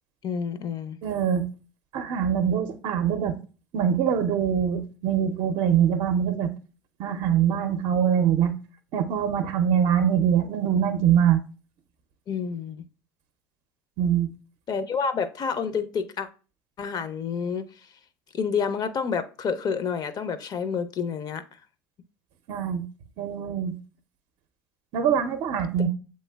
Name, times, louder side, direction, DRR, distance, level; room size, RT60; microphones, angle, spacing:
voice 1, 0.2-1.0 12.3-12.8 14.7-16.3 16.8-17.7 18.3-21.4, left 6 dB, 45° left, 0.5 m, -29 dB
voice 2, 1.0-1.4 1.9-3.4 3.7-6.5 7.0-8.5 8.9-11.4 14.0-14.3 22.5-22.8 23.2-23.7 24.9-25.9, right 8 dB, 60° right, 0.5 m, -23 dB
7.4 x 3.1 x 2.2 m
hypercardioid pair, 75°, 10 cm